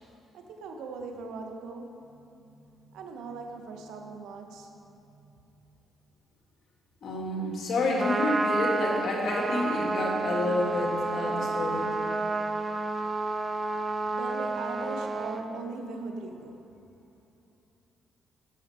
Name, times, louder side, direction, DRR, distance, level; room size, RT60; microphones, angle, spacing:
voice 1, 0.3-5.4 14.0-16.7, right 3 dB, 85° right, 3 dB, 0.9 m, -40 dB
voice 2, 7.0-11.9, left 2 dB, 60° left, -2 dB, 2.2 m, -29 dB
Trumpet, 7.8-15.4, right 3 dB, 35° right, 0.6 m, -30 dB
12.5 x 6.2 x 4.3 m, 2.9 s
cardioid pair, 90°, 0 cm